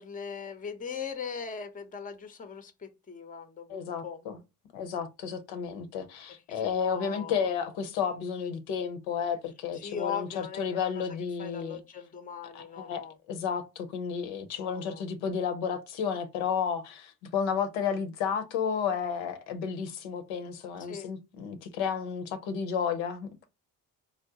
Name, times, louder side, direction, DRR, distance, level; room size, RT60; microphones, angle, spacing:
voice 1, 0.0-4.3 6.3-7.5 9.7-13.2 14.6-15.0 20.8-21.1, left 6 dB, 20° left, 0.6 m, -40 dB
voice 2, 3.7-4.4 4.7-11.8 12.5-23.4, left 7 dB, 70° left, 0.7 m, -32 dB
3.7 x 2.0 x 2.7 m
hypercardioid pair, 45°, 48 cm